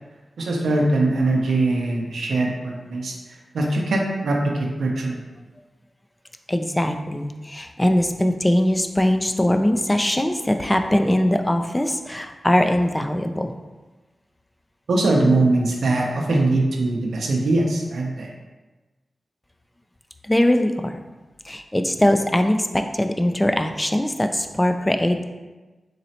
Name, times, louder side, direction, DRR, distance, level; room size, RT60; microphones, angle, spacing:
voice 1, 0.4-3.1 3.5-5.2 14.9-18.3, right 2 dB, 85° right, 0 dB, 0.6 m, -21 dB
voice 2, 6.5-13.5 20.2-21.0 21.5-25.2, left 1 dB, 15° left, 6 dB, 0.3 m, -21 dB
4.0 x 3.1 x 2.8 m, 1.2 s
cardioid pair, 45°, 0 cm